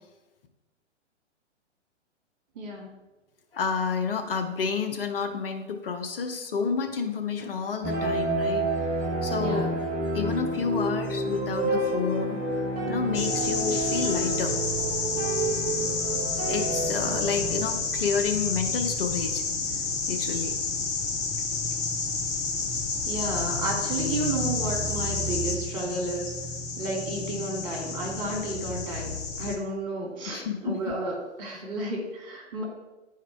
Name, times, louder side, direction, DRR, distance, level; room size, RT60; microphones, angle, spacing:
voice 1, 2.5-2.9 9.2-9.8 23.0-26.3 26.8-32.6, right 2 dB, 35° right, -1 dB, 2.5 m, -32 dB
voice 2, 3.5-8.9 9.2-9.8 10.1-14.5 16.5-19.4 20.1-20.5 30.3-30.8, left 5 dB, 50° left, 5 dB, 0.8 m, -30 dB
sound 1, 7.8-17.6, right 2 dB, 20° right, 1.2 m, -29 dB
sound 2, 13.1-29.6, left 4 dB, 15° left, 0.4 m, -30 dB
10.0 x 4.7 x 3.5 m, 1.1 s
figure-of-eight pair, 115°, 36 cm